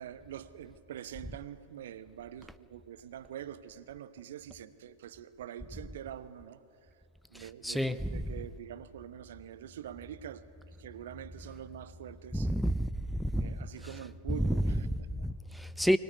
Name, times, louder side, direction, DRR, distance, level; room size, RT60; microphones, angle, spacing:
voice 1, 0.0-6.6 7.3-10.4 10.8-12.5 13.3-15.3, right 10 dB, 60° right, 1.0 m, -45 dB
voice 2, 7.3-8.2 12.3-13.5 14.4-14.5 15.1-16.0, equal, ahead, 0.5 m, -30 dB
23.5 x 18.5 x 9.4 m
figure-of-eight pair, 90°, 0 cm